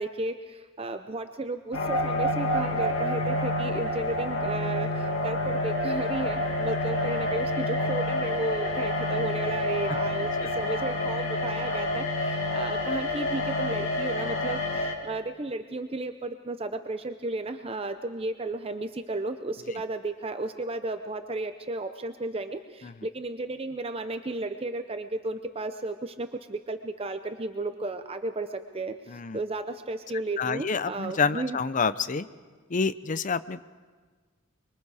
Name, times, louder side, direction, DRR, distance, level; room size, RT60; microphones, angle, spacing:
voice 1, 0.0-31.6, right 2 dB, 30° right, 8 dB, 0.6 m, -34 dB
sound 1, 1.7-14.9, left 1 dB, 85° left, 2.2 m, -28 dB
voice 2, 29.1-29.4 30.4-32.3 32.7-33.6, left 5 dB, 40° left, 15 dB, 0.5 m, -28 dB
24.5 x 23.0 x 4.8 m, 1.4 s
head